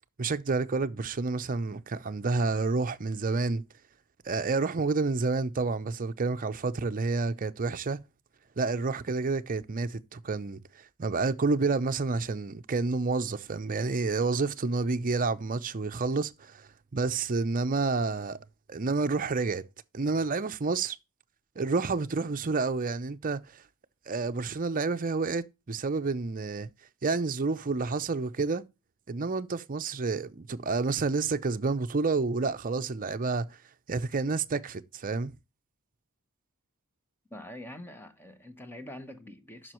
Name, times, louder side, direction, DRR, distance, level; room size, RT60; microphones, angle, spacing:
voice 1, 0.2-3.6 4.2-8.0 8.6-18.4 18.7-19.6 19.9-21.0 21.6-23.6 24.1-26.7 27.0-28.6 29.1-33.6 33.9-35.3, right 3 dB, 40° right, 0.6 m, -29 dB
voice 2, 37.3-39.7, left 1 dB, 10° left, 0.9 m, -45 dB
9.3 x 6.2 x 3.0 m
head